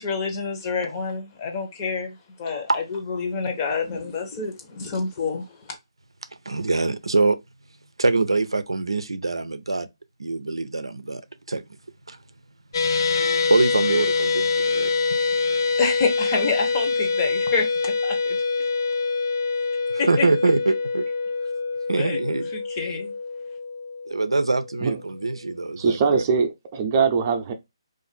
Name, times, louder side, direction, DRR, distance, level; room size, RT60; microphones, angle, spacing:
voice 1, 0.0-5.5 15.8-18.4 20.0-20.3 21.9-22.2 22.5-23.1, left 4 dB, 30° left, 0.9 m, -28 dB
voice 2, 6.5-7.4 8.0-9.9 10.2-11.2 11.5-11.6 12.1-12.2 13.1-14.9 19.9-21.0 21.9-22.5 24.1-26.2, right 3 dB, 85° right, 0.5 m, -24 dB
sound 1, 12.7-25.1, left 4 dB, 50° left, 0.4 m, -25 dB
voice 3, 25.8-27.5, right 5 dB, 30° right, 0.6 m, -22 dB
2.6 x 2.5 x 4.0 m
figure-of-eight pair, 150°, 3 cm